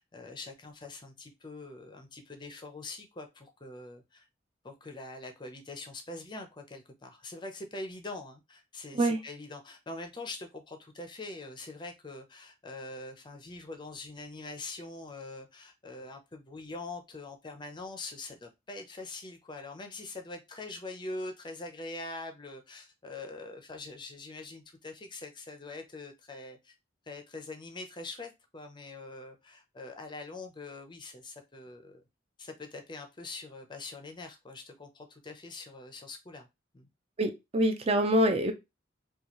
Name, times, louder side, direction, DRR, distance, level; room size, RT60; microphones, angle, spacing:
voice 1, 0.0-4.3 4.6-26.7 27.1-32.0 32.4-36.5 36.7-36.9, left 2 dB, 25° left, 0.5 m, -43 dB
voice 2, 37.2-38.5, right 1 dB, 30° right, 0.5 m, -25 dB
4.1 x 2.3 x 2.9 m
head